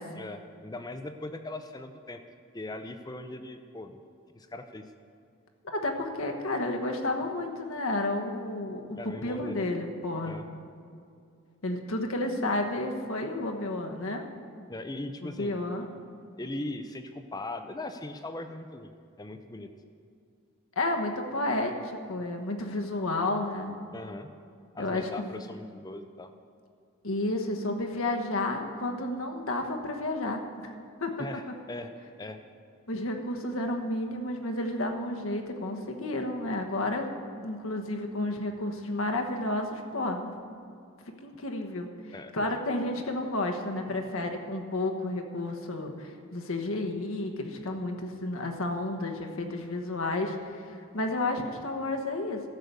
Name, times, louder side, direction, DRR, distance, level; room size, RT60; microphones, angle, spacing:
voice 1, 0.2-2.2 2.5-4.0 4.4-4.8 8.9-9.7 10.2-10.5 14.7-15.6 16.4-19.7 23.9-24.3 24.7-26.3 31.2-31.9 32.2-32.4 42.1-42.5, left 2 dB, 15° left, 8 dB, 0.5 m, -39 dB
voice 2, 5.6-10.4 11.6-14.2 15.2-15.9 20.8-23.7 24.8-25.4 27.0-30.7 31.0-31.1 32.9-37.1 37.4-40.3 41.2-41.9 42.3-52.4, left 2 dB, 65° left, 3 dB, 1.2 m, -31 dB
13.0 x 6.8 x 8.1 m, 2.4 s
head